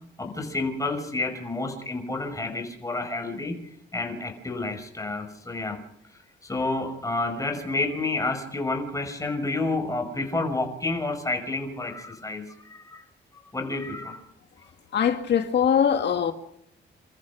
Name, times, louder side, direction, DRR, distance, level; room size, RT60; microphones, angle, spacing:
voice 1, 0.2-3.5 3.9-5.8 6.4-13.0 13.5-14.2, left 2 dB, 15° left, 6.0 m, -29 dB
voice 2, 14.9-16.3, left 8 dB, 60° left, 2.1 m, -22 dB
29.5 x 14.0 x 6.2 m
cardioid pair, 90°, 20 cm